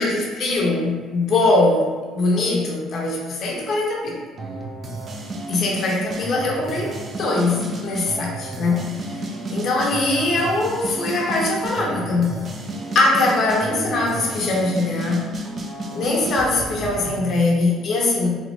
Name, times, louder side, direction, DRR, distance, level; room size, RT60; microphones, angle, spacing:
voice 1, 0.0-4.2 5.5-9.2 9.5-12.4 12.9-15.3 15.9-18.4, left 2 dB, 55° left, -2 dB, 0.8 m, -21 dB
sound 1, 4.4-17.3, right 2 dB, 40° right, 0.5 m, -32 dB
3.1 x 2.3 x 3.1 m, 1.5 s
cardioid pair, 95°, 0 cm